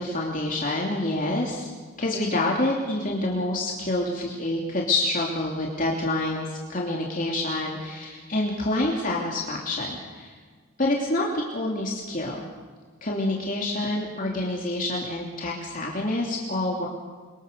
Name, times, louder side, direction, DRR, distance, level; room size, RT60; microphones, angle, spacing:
voice 1, 0.0-1.7 2.0-10.3 10.8-12.4 13.0-16.9, left 2 dB, 40° left, -2 dB, 3.1 m, -27 dB
29.5 x 23.0 x 6.9 m, 1.5 s
head